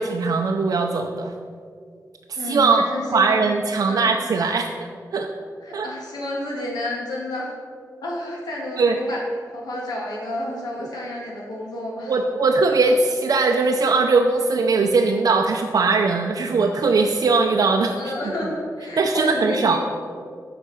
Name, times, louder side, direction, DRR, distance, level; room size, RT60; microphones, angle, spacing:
voice 1, 0.0-1.3 2.3-2.9 3.1-5.3 5.7-5.9 8.8-9.0 10.8-10.9 12.1-18.1 19.0-19.8, right 4 dB, 65° right, 2 dB, 0.5 m, -20 dB
voice 2, 2.4-3.5 3.9-4.2 5.6-7.5 8.0-9.2 9.5-12.1 18.0-19.8, left 1 dB, 85° left, -3 dB, 2.2 m, -30 dB
8.3 x 5.9 x 5.5 m, 2.2 s
wide cardioid pair, 120°, 7 cm